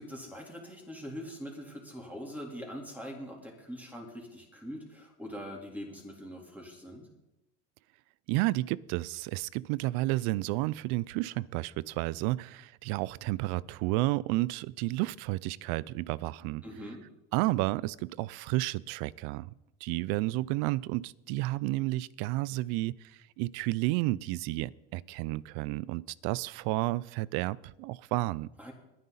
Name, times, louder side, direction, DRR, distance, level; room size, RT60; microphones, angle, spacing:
voice 1, 0.0-7.1 16.6-17.0 28.6-28.7, equal, 5° right, 3.5 m, -43 dB
voice 2, 8.3-16.6 17.3-19.5 19.8-22.9 23.4-28.5, right 19 dB, 65° right, 0.5 m, -31 dB
21.5 x 9.6 x 4.1 m
supercardioid pair, 115°, 39 cm